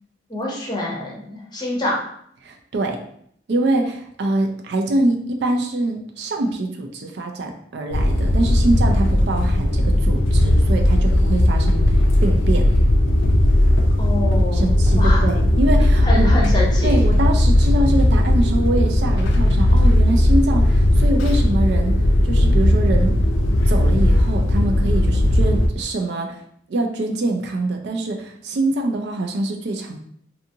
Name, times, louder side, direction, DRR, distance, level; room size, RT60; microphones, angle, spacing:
voice 1, 0.3-2.0 14.0-14.7 15.0-15.3 16.0-17.0, left 1 dB, 25° left, -2 dB, 0.6 m, -26 dB
voice 2, 2.4-3.0 3.5-12.7 14.5-16.3 16.8-22.0 22.2-23.1 23.6-26.4 26.7-30.0, right 2 dB, 60° right, 3 dB, 0.4 m, -24 dB
sound 1, 7.9-25.7, left 1 dB, 90° left, 0.4 m, -17 dB
2.6 x 2.5 x 2.7 m, 0.67 s
head